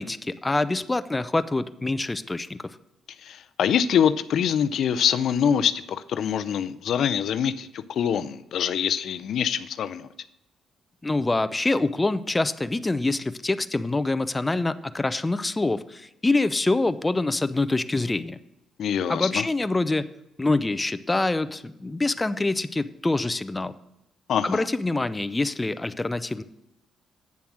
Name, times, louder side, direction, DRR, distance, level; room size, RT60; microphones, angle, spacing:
voice 1, 0.0-2.6 11.0-18.4 19.1-20.1 20.4-23.8 24.4-26.4, left 2 dB, 15° left, 13 dB, 0.5 m, -25 dB
voice 2, 3.2-10.1 18.8-19.5 24.3-24.7, left 8 dB, 70° left, 13 dB, 0.5 m, -24 dB
8.6 x 7.1 x 6.2 m, 0.91 s
cardioid pair, 90°, 0 cm